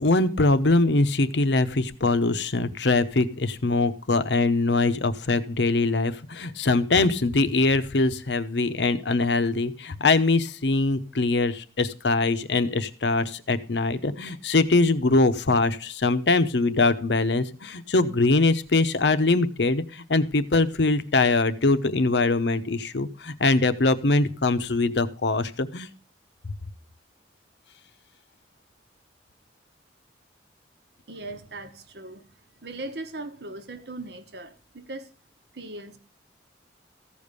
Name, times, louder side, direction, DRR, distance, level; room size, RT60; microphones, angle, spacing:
voice 1, 0.0-25.9, left 3 dB, 70° left, 0.8 m, -22 dB
voice 2, 31.1-32.2 32.6-35.1 35.5-36.0, right 2 dB, 65° right, 1.2 m, -38 dB
14.5 x 5.3 x 6.7 m
head